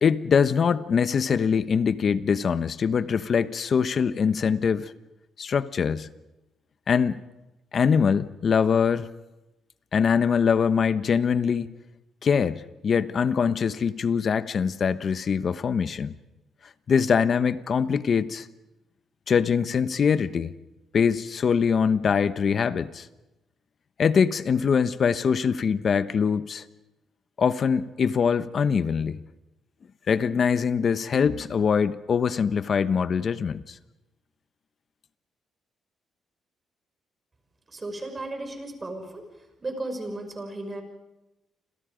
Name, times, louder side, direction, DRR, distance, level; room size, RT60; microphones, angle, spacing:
voice 1, 0.0-4.9 5.4-6.1 6.9-7.2 7.7-9.1 9.9-11.7 12.2-16.1 16.9-18.5 19.3-20.5 20.9-23.1 24.0-26.6 27.4-29.2 30.1-33.8, left 6 dB, 50° left, 14 dB, 1.0 m, -23 dB
voice 2, 37.7-39.2 39.6-40.8, right 2 dB, 30° right, 5 dB, 6.2 m, -34 dB
29.5 x 26.5 x 5.1 m, 0.98 s
cardioid pair, 90°, 0 cm